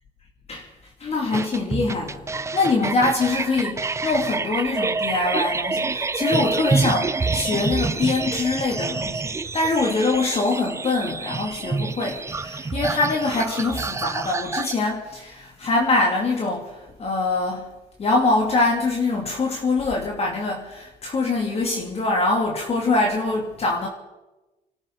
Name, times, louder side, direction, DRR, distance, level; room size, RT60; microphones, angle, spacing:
voice 1, 1.0-17.7 18.0-23.9, left 3 dB, 35° left, 0 dB, 2.5 m, -24 dB
sound 1, 1.3-14.7, right 4 dB, 15° right, 0.5 m, -27 dB
26.0 x 13.0 x 4.0 m, 1.1 s
cardioid pair, 110°, 17 cm